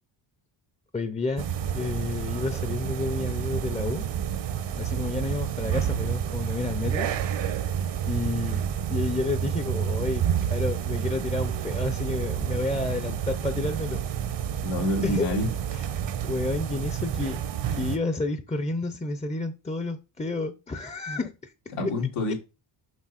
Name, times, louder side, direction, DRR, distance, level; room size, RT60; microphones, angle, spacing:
voice 1, 0.9-1.5 1.7-4.1 4.7-7.1 7.5-7.7 8.1-8.6 8.9-14.0 15.0-15.3 15.7-15.8 16.3-17.4 17.7-21.5 21.8-21.9 22.3-22.4, left 3 dB, 15° left, 0.6 m, -30 dB
sound 1, 1.4-18.0, right 9 dB, 60° right, 0.9 m, -29 dB
voice 2, 14.6-15.5 21.7-22.3, left 1 dB, 90° left, 2.9 m, -27 dB
6.2 x 5.7 x 4.2 m
cardioid pair, 90°, 49 cm